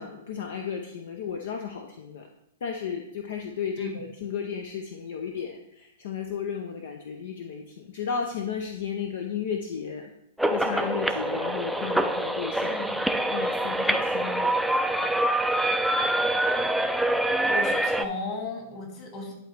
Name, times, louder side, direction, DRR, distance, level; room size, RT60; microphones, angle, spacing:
voice 1, 0.0-2.3 2.6-10.1 10.5-12.8 13.3-14.6, left 7 dB, 65° left, 4 dB, 0.6 m, -34 dB
sound 1, 10.4-18.1, right 1 dB, ahead, 0.4 m, -25 dB
voice 2, 12.7-13.0 17.5-19.3, left 3 dB, 40° left, 1 dB, 2.3 m, -35 dB
10.5 x 4.0 x 3.3 m, 0.81 s
hypercardioid pair, 110°, 0 cm